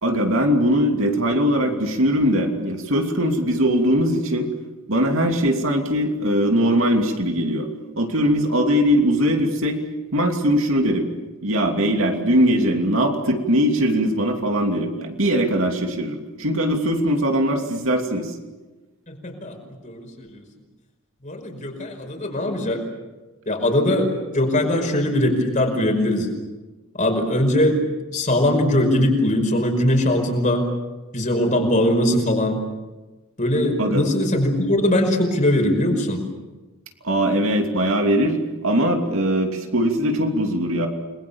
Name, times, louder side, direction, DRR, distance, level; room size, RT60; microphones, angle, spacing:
voice 1, 0.0-4.5 4.9-7.7 8.0-9.8 10.1-11.1 11.4-18.3 33.8-34.1 37.0-40.9, equal, 60° right, 3 dB, 2.9 m, -20 dB
voice 2, 19.1-19.6 19.8-20.4 21.2-22.8 23.5-26.3 27.0-27.8 28.1-30.7 31.1-32.6 33.4-36.2, left 1 dB, 35° left, 3 dB, 5.2 m, -21 dB
30.0 x 21.5 x 7.2 m, 1.2 s
head